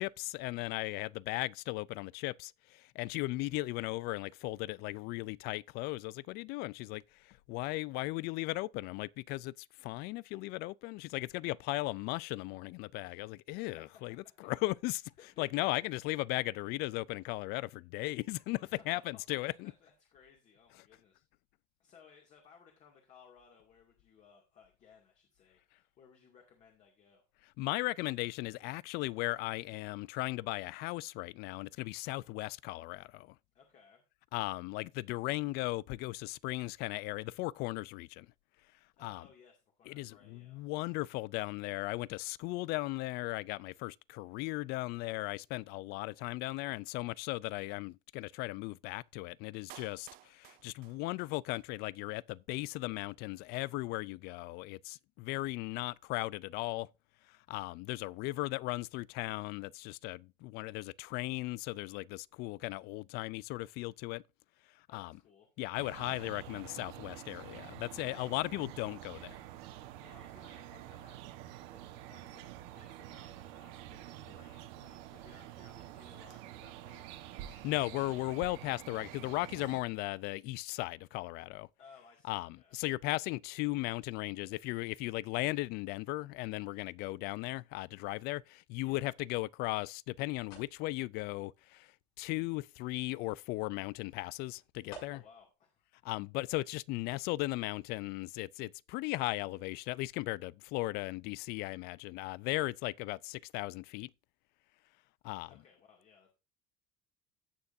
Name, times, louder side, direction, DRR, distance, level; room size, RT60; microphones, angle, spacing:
voice 1, 0.0-19.7 27.6-33.3 34.3-38.3 39.0-39.3 39.8-56.9 57.5-64.2 64.9-65.2 65.6-69.4 77.5-81.7 82.2-91.9 92.2-95.2 96.0-104.1 105.2-105.6, left 20 dB, 60° left, 0.4 m, -37 dB
voice 2, 13.9-14.5 15.2-15.9 18.6-21.2 21.8-27.2 33.5-34.0 39.0-40.6 64.9-65.5 68.1-68.3 70.0-77.1 81.8-82.8 88.8-89.1 95.1-95.9 105.5-106.3, left 6 dB, 40° left, 2.3 m, -61 dB
Clapping, 49.7-51.7 51.9-52.0, right 19 dB, 55° right, 0.4 m, -55 dB
sound 1, 65.8-79.8, right 13 dB, 80° right, 1.2 m, -48 dB
sound 2, 89.1-95.5, left 1 dB, 90° left, 7.3 m, -58 dB
16.5 x 6.5 x 2.6 m
cardioid pair, 140°, 18 cm